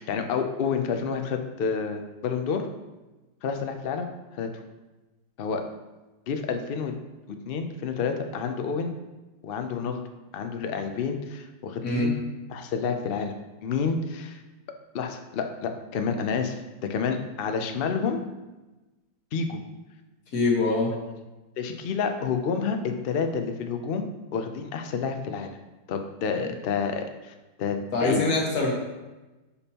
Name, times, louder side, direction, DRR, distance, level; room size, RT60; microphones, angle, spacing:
voice 1, 0.0-2.7 3.4-4.1 4.3-4.5 5.4-5.6 6.3-6.9 7.3-8.9 9.4-10.0 10.3-12.1 12.5-13.3 13.6-14.4 14.9-18.2 19.3-19.6 21.6-24.0 24.3-25.5 25.9-28.2, left 5 dB, 90° left, 6 dB, 0.5 m, -29 dB
voice 2, 11.8-12.1 20.3-21.0 27.9-28.7, left 2 dB, 65° left, -1 dB, 1.9 m, -24 dB
8.6 x 5.3 x 2.9 m, 1.1 s
omnidirectional pair, 1.8 m